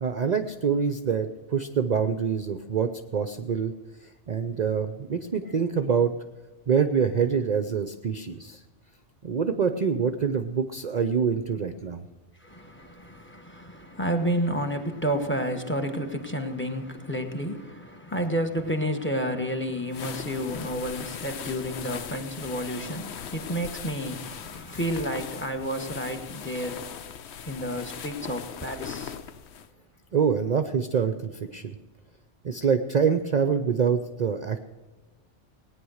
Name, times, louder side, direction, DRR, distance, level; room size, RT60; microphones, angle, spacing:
voice 1, 0.0-3.7 4.0-6.1 6.7-8.6 9.2-12.1 30.1-31.8 32.4-34.6, right 6 dB, 45° right, 9 dB, 0.6 m, -25 dB
voice 2, 12.4-26.8 27.5-29.1, equal, 10° left, 7 dB, 1.3 m, -30 dB
sound 1, 19.9-29.7, left 8 dB, 70° left, 1.0 m, -39 dB
18.5 x 9.5 x 6.4 m, 1.2 s
omnidirectional pair, 1.2 m